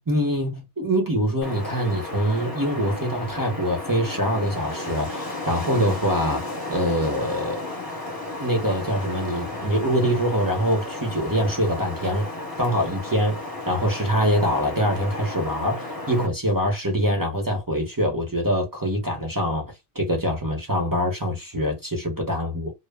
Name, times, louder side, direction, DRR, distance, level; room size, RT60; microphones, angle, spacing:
voice 1, 0.0-6.4 6.7-7.6 8.4-12.3 12.6-13.4 13.7-22.7, equal, 25° right, 0.5 m, -24 dB
Wind, 1.4-16.3, left 2 dB, 20° left, 0.8 m, -33 dB
2.1 x 2.0 x 3.3 m
omnidirectional pair, 1.3 m